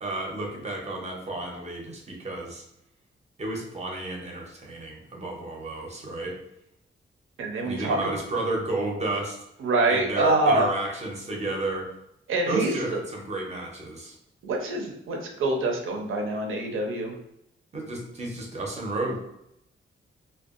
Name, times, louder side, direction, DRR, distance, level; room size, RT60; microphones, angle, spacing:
voice 1, 0.0-2.6 3.4-6.4 7.6-9.4 9.9-11.9 12.5-14.2 17.7-19.2, right 2 dB, 30° right, 0 dB, 0.6 m, -32 dB
voice 2, 7.4-8.0 9.6-10.7 12.3-12.7 14.4-17.1, right 2 dB, 80° right, 1 dB, 0.6 m, -25 dB
2.6 x 2.2 x 2.4 m, 0.80 s
wide cardioid pair, 145°, 21 cm